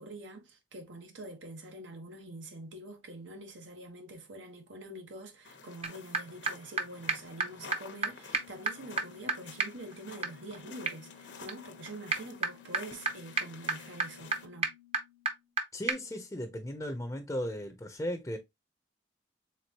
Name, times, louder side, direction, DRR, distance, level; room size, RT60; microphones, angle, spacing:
voice 1, 0.0-14.7, right 1 dB, 85° right, 1.2 m, -46 dB
sound 1, 5.4-14.5, left 5 dB, 75° left, 0.9 m, -51 dB
sound 2, 5.8-5.9 6.1-6.2 6.5-6.6 6.8-6.9 7.1-7.2 7.4-7.5 7.7-7.8 8.0-8.1 8.3-15.6 15.9-16.0, right 4 dB, 35° right, 0.7 m, -35 dB
voice 2, 15.7-18.4, equal, 15° left, 0.5 m, -36 dB
4.5 x 3.6 x 2.8 m
head